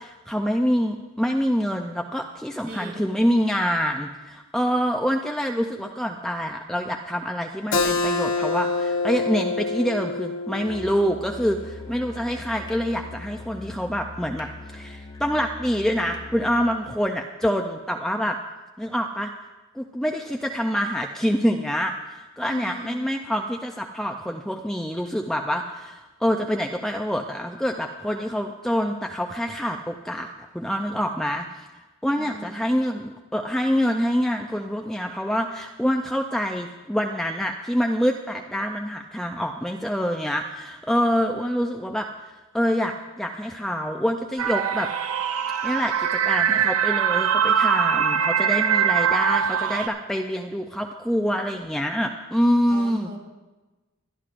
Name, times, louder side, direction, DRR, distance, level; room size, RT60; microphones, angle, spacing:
voice 1, 0.0-18.4 18.8-19.3 19.7-31.7 32.0-44.9 45.6-53.1, equal, ahead, 3 dB, 0.4 m, -26 dB
voice 2, 2.7-3.3 22.4-23.1 32.2-32.7 52.7-53.2, right 1 dB, 40° right, 1 dB, 2.6 m, -39 dB
Keyboard (musical), 7.7-12.9, left 3 dB, 65° left, 1.0 m, -27 dB
Musical instrument, 10.6-16.9, left 2 dB, 20° left, 0.8 m, -41 dB
sound 1, 44.4-49.9, right 8 dB, 85° right, 0.6 m, -22 dB
23.5 x 11.5 x 2.5 m, 1.2 s
head